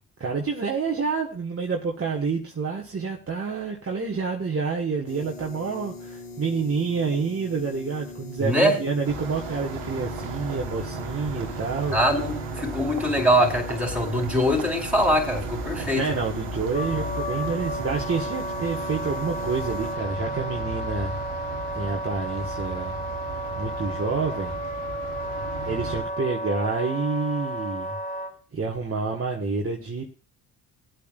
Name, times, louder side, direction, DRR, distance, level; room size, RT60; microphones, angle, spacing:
voice 1, 0.2-12.0 15.9-21.1 21.7-23.0 23.6-24.6 25.6-27.9 28.5-30.0, right 4 dB, 30° right, 0 dB, 1.6 m, -28 dB
sound 1, 5.1-19.9, left 3 dB, 90° left, 1.9 m, -41 dB
voice 2, 8.4-8.8 11.9-16.0, equal, 5° right, 2 dB, 4.2 m, -22 dB
sound 2, 9.0-26.0, right 3 dB, 90° right, 1.5 m, -35 dB
Wind instrument woodwind instrument, 16.7-28.3, equal, 15° left, 3.6 m, -33 dB
20.0 x 8.5 x 2.5 m, 0.36 s
hypercardioid pair, 55°, 49 cm